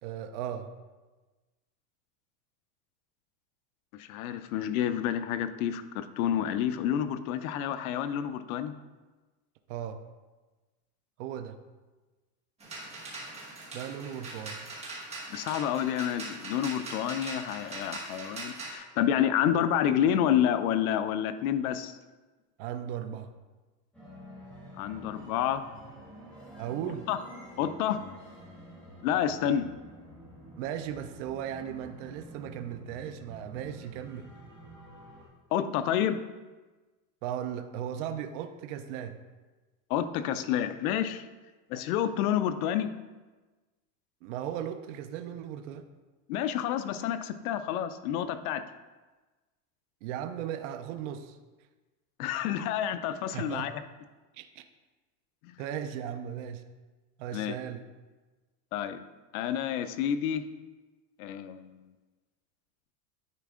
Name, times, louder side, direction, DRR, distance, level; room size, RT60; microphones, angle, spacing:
voice 1, 0.0-0.7 9.7-10.0 11.2-11.6 13.7-14.6 22.6-23.3 26.6-27.1 30.6-34.3 37.2-39.2 44.2-45.9 50.0-51.4 53.3-53.7 54.3-54.6 55.6-56.6 57.2-57.8, right 9 dB, 50° right, 8 dB, 0.5 m, -37 dB
voice 2, 3.9-8.7 15.3-22.0 24.8-25.6 27.1-27.2 27.6-28.0 29.0-29.7 35.5-36.2 39.9-41.2 41.7-42.9 46.3-48.6 52.2-53.7 55.4-55.5 57.3-57.5 58.7-59.0 59.3-60.4 61.2-61.8, left 10 dB, 65° left, 11 dB, 0.6 m, -29 dB
sound 1, 12.6-18.7, right 2 dB, 15° right, 1.1 m, -41 dB
sound 2, 23.9-35.3, right 1 dB, ahead, 1.3 m, -49 dB
9.8 x 4.2 x 3.6 m, 1.2 s
supercardioid pair, 170°, 47 cm